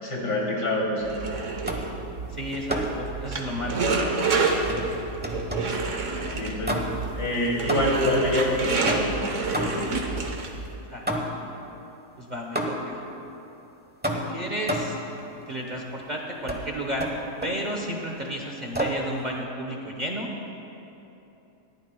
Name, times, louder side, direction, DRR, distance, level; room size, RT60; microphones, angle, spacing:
voice 1, 0.0-1.2 6.3-6.8 7.1-9.7, left 1 dB, 85° left, -4 dB, 3.4 m, -26 dB
sound 1, 1.0-10.7, right 3 dB, 50° right, 1.3 m, -29 dB
sound 2, 1.7-2.0 2.7-3.1 4.7-5.8 6.6-7.2 7.7-8.2 8.9-10.0 11.1-11.5 12.6-13.0 14.0-15.1 16.5-16.7 17.0-17.7 18.7-19.1, equal, 10° right, 0.7 m, -30 dB
voice 2, 2.3-3.9 6.3-6.6 10.9-11.2 12.2-13.0 14.1-15.0 15.5-17.1 17.4-20.3, equal, 30° right, -1 dB, 1.0 m, -32 dB
20.5 x 14.5 x 2.3 m, 2.9 s
omnidirectional pair, 1.7 m